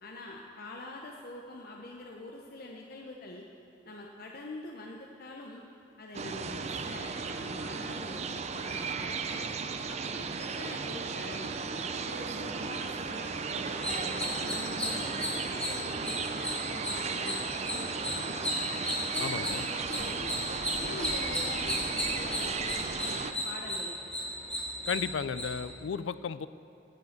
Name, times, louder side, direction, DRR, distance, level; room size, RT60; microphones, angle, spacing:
voice 1, 0.0-3.5 3.8-5.6 6.0-9.4 9.9-11.5 12.0-18.4 19.1-20.3 20.8-21.8 22.1-24.0, left 2 dB, 55° left, 0 dB, 0.9 m, -45 dB
sound 1, 6.1-23.3, right 5 dB, 35° right, 0.5 m, -35 dB
sound 2, 13.7-25.8, left 1 dB, 5° left, 2.0 m, -35 dB
voice 2, 19.2-19.6 24.9-26.5, left 6 dB, 90° left, 16 dB, 0.4 m, -34 dB
12.0 x 8.4 x 7.9 m, 2.7 s
head